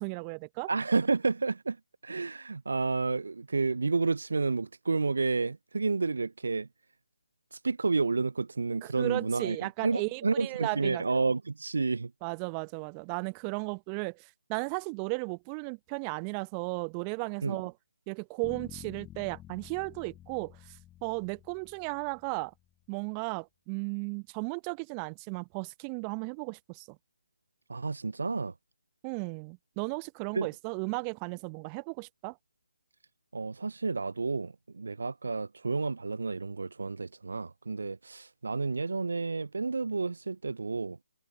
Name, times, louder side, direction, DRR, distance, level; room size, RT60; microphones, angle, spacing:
voice 1, 0.0-0.7 8.8-11.0 12.2-17.7 18.1-22.5 22.9-27.0 29.0-32.4, right 37 dB, 20° right, 1.0 m, -35 dB
voice 2, 0.7-1.8 2.0-6.7 7.5-12.1 17.4-17.6 27.7-28.5 30.3-30.5 33.3-41.0, right 4 dB, 60° right, 0.7 m, -30 dB
sound 1, 18.4-22.5, left 13 dB, 10° left, 2.0 m, -50 dB
figure-of-eight pair, 150°, 0 cm